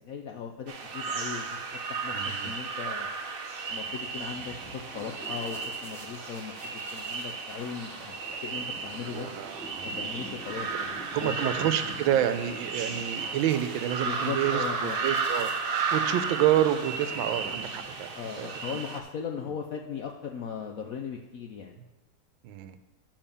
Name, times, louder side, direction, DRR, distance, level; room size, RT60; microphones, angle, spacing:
voice 1, 0.0-1.6 1.9-3.1 3.7-9.3 9.9-11.7 14.0-15.0 18.1-21.8, left 7 dB, 75° left, 2 dB, 0.8 m, -38 dB
sound 1, 0.7-19.0, right 5 dB, 60° right, 0.5 m, -34 dB
voice 2, 2.1-2.5 9.1-9.9 11.1-18.5 22.4-22.7, right 11 dB, 85° right, 10 dB, 1.4 m, -28 dB
sound 2, 3.9-18.2, equal, ahead, 1.2 m, -47 dB
7.2 x 5.3 x 6.9 m, 1.1 s
omnidirectional pair, 2.1 m